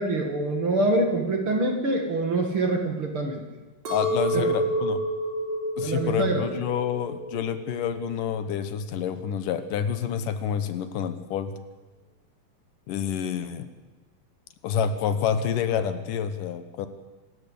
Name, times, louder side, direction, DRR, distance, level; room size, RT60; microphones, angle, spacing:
voice 1, 0.0-3.4 4.3-4.5 5.8-6.5, right 2 dB, 45° right, 3 dB, 2.6 m, -25 dB
voice 2, 3.9-5.0 5.8-11.5 12.9-13.7 14.6-16.9, left 8 dB, 75° left, 11 dB, 2.6 m, -28 dB
Chink clink, 3.9-8.2 8.6-9.2, right 1 dB, 80° right, 5.5 m, -30 dB
25.5 x 12.5 x 8.5 m, 1.2 s
omnidirectional pair, 4.0 m